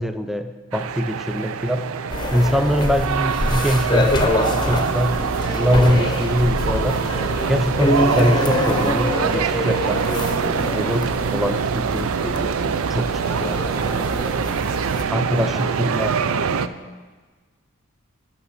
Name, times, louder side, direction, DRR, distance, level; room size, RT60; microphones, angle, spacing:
voice 1, 0.0-1.9 2.3-7.0 7.5-13.1 13.4-13.8 15.1-16.2, equal, ahead, 8 dB, 0.4 m, -23 dB
sound 1, 0.7-16.7, right 6 dB, 90° right, 0.4 m, -24 dB
sound 2, 2.1-15.0, left 2 dB, 20° left, 0.8 m, -25 dB
voice 2, 13.7-14.5 15.3-16.7, right 1 dB, 30° right, -3 dB, 1.2 m, -36 dB
11.5 x 5.8 x 6.4 m, 1.4 s
head